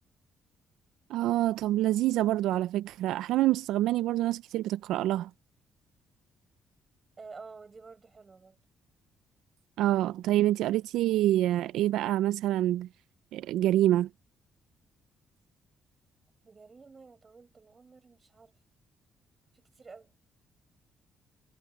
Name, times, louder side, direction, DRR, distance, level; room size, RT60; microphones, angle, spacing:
voice 1, 1.1-5.3 9.8-12.9 13.3-14.1, right 14 dB, 90° right, 0.4 m, -26 dB
voice 2, 7.2-8.6 16.4-18.6 19.5-20.1, right 4 dB, 35° right, 5.9 m, -50 dB
cardioid pair, 90°, 0 cm